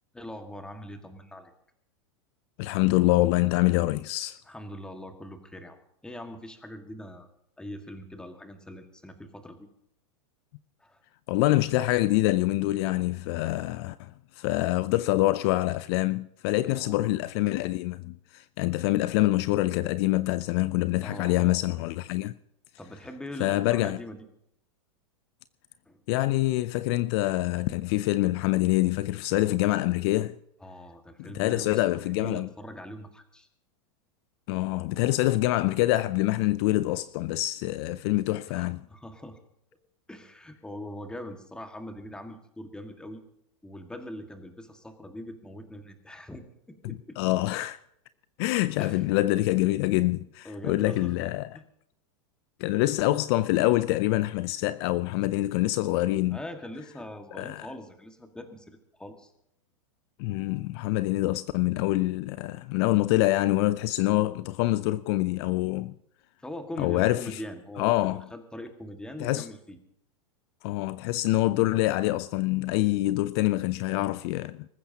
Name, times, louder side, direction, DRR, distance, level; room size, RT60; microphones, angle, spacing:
voice 1, 0.1-1.5 4.5-5.8 6.0-7.3 7.6-9.6 10.8-11.0 16.6-17.0 18.6-18.7 21.0-21.6 22.8-24.2 25.9-26.0 30.6-33.5 38.5-39.4 40.1-43.2 43.6-47.2 48.8-49.1 50.4-51.3 51.5-51.6 56.3-59.3 66.4-69.8, left 1 dB, 5° left, 1.8 m, -42 dB
voice 2, 2.6-4.4 11.3-14.1 14.4-22.3 23.4-24.0 26.1-30.4 31.2-32.5 34.5-38.8 47.2-47.8 48.4-51.5 52.6-56.4 57.4-57.7 60.2-65.9 66.8-67.4 67.8-68.2 69.2-69.5 70.6-74.7, left 17 dB, 55° left, 0.5 m, -25 dB
25.0 x 14.5 x 2.9 m
hypercardioid pair, 120°, 16 cm